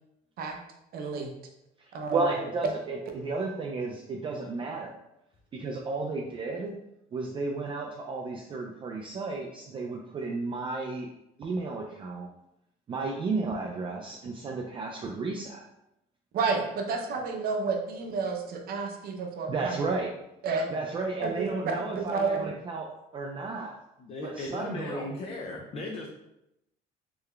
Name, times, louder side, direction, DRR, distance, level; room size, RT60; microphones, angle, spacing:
voice 1, 0.9-1.3 1.9-2.3 16.3-19.7 20.4-20.7 21.2-22.5, right 4 dB, 65° right, 3 dB, 0.7 m, -30 dB
voice 2, 1.8-4.9 5.5-6.7 7.1-11.1 11.4-12.3 12.9-15.6 19.5-20.1 20.7-23.8 24.2-25.2, right 3 dB, 30° right, 0 dB, 0.4 m, -33 dB
voice 3, 24.0-26.1, left 2 dB, 35° left, 1 dB, 0.5 m, -37 dB
3.3 x 2.2 x 3.6 m, 0.86 s
cardioid pair, 110°, 17 cm